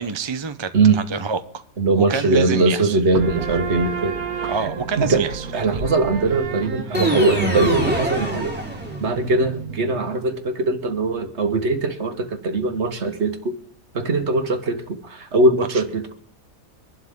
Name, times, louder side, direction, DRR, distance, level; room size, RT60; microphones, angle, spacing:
voice 1, 0.0-1.6 1.9-3.0 4.5-5.5 5.7-5.8, right 5 dB, 25° right, 9 dB, 0.6 m, -27 dB
voice 2, 1.8-4.2 5.0-5.2 5.5-8.5 9.0-13.5 13.9-16.1, right 3 dB, 50° right, 8 dB, 1.6 m, -21 dB
sound 1, 3.1-10.4, right 5 dB, 85° right, 1.6 m, -32 dB
sound 2, 6.9-9.3, right 1 dB, 5° right, 3.2 m, -24 dB
24.0 x 11.5 x 3.7 m, 0.62 s
omnidirectional pair, 1.5 m